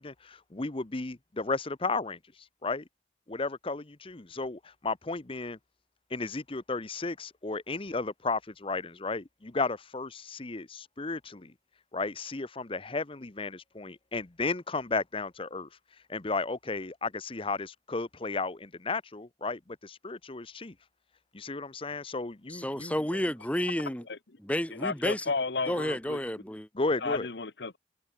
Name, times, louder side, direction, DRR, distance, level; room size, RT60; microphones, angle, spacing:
voice 1, 0.0-2.8 3.3-5.6 6.1-11.5 11.9-20.7 21.3-22.9 26.7-27.3, left 3 dB, 30° left, 0.9 m, -34 dB
voice 2, 22.5-24.1 24.4-25.3 25.7-26.7, equal, 10° left, 2.9 m, -31 dB
voice 3, 24.7-26.2 27.0-27.8, left 4 dB, 70° left, 1.2 m, -32 dB
head